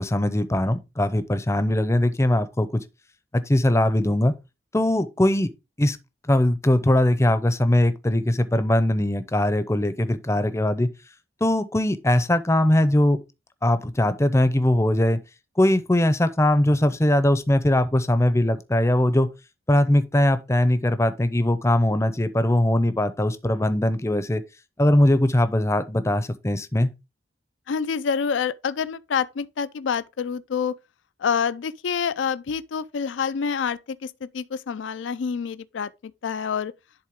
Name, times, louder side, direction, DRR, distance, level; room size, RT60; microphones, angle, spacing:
voice 1, 0.0-2.8 3.3-4.3 4.7-5.5 5.8-6.0 6.3-10.9 11.4-13.2 13.6-15.2 15.6-19.3 19.7-24.4 24.8-26.9, left 1 dB, 15° left, 0.6 m, -21 dB
voice 2, 27.7-30.8 31.2-36.7, left 6 dB, 80° left, 0.4 m, -27 dB
11.0 x 3.7 x 3.6 m
head